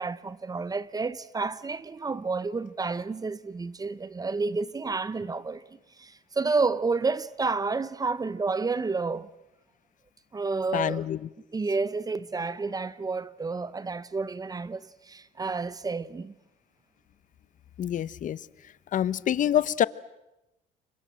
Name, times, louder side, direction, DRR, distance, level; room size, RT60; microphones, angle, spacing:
voice 1, 0.0-5.6 6.0-9.3 10.3-11.1 11.5-16.3, right 4 dB, 20° right, 0.9 m, -30 dB
voice 2, 10.7-11.3 17.8-18.4 18.9-19.9, left 10 dB, 50° left, 0.9 m, -26 dB
29.5 x 24.5 x 7.6 m
cardioid pair, 110°, 17 cm